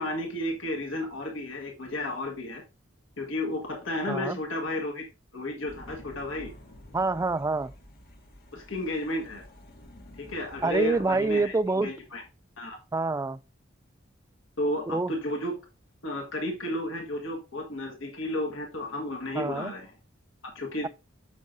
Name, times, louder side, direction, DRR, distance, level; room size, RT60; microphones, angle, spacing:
voice 1, 0.0-2.6 3.2-5.0 5.3-6.5 8.5-9.4 10.2-12.2 12.6-12.8 14.6-15.5 16.0-19.9 20.5-20.9, left 1 dB, 75° left, 1.5 m, -32 dB
sound 1, 5.7-12.3, left 1 dB, 50° left, 1.6 m, -50 dB
voice 2, 6.9-7.7 10.6-11.9 12.9-13.4 14.9-15.1 19.4-19.7, right 3 dB, 15° right, 0.3 m, -26 dB
8.3 x 6.5 x 2.7 m
head